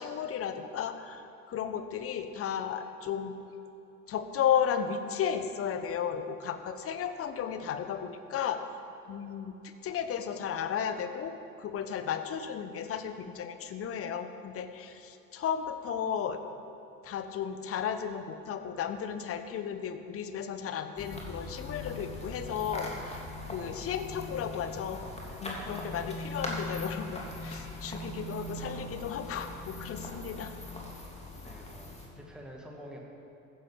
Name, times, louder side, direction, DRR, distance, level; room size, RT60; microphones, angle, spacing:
voice 1, 0.0-3.3 4.1-8.6 9.1-16.4 17.0-25.0 25.4-30.5, left 8 dB, 30° left, 9 dB, 1.0 m, -34 dB
sound 1, 21.0-32.1, left 1 dB, 15° left, 2.9 m, -40 dB
voice 2, 31.4-33.0, equal, ahead, -1 dB, 2.1 m, -48 dB
14.5 x 10.5 x 5.1 m, 2.9 s
figure-of-eight pair, 70°, 42 cm